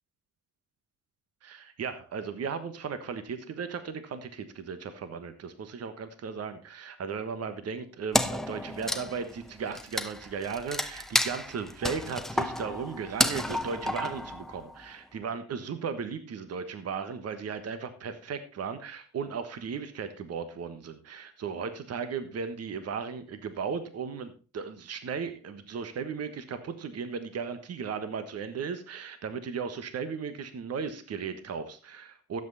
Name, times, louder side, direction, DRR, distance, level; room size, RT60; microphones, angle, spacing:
voice 1, 1.4-32.4, right 6 dB, 55° right, 10 dB, 1.4 m, -36 dB
Wood, 8.1-14.8, left 1 dB, ahead, 0.8 m, -31 dB
13.5 x 8.0 x 4.2 m, 0.35 s
cardioid pair, 90°, 30 cm